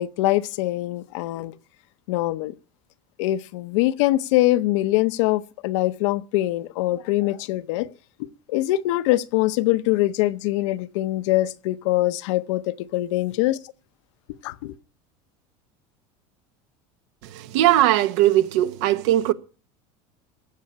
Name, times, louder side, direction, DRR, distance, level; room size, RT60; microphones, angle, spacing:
voice 1, 0.0-1.6 2.1-2.5 3.2-7.9 8.2-13.6 14.4-14.7, left 16 dB, 80° left, 0.8 m, -23 dB
voice 2, 17.3-19.3, right 14 dB, 75° right, 1.1 m, -19 dB
16.0 x 5.8 x 9.9 m
supercardioid pair, 130°, 15 cm